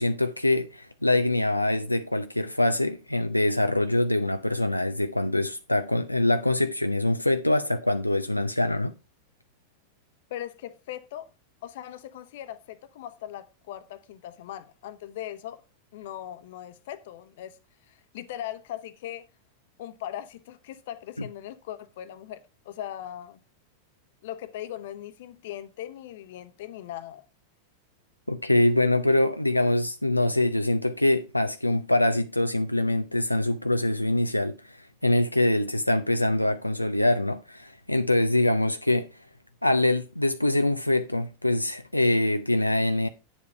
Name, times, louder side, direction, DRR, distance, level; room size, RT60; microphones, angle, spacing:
voice 1, 0.0-8.9 28.3-39.1 39.6-43.1, left 1 dB, 85° left, 0.5 m, -24 dB
voice 2, 10.3-11.3 11.6-15.6 15.9-17.6 17.9-19.2 19.8-23.4 24.2-27.2, left 12 dB, 55° left, 1.0 m, -39 dB
9.6 x 7.2 x 4.5 m
figure-of-eight pair, 90°, 0 cm